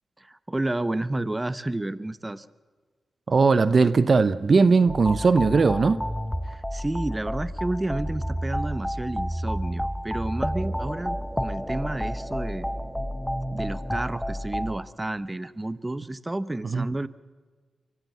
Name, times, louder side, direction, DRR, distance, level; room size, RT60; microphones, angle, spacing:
voice 1, 0.2-2.5 6.4-12.7 13.5-17.1, right 2 dB, 20° right, 15 dB, 0.9 m, -31 dB
voice 2, 3.3-6.0 16.7-16.9, right 4 dB, 55° right, 15 dB, 0.8 m, -19 dB
sound 1, 4.9-14.8, equal, 5° left, 1.2 m, -30 dB
24.5 x 15.0 x 7.4 m, 1.4 s
cardioid pair, 55°, 0 cm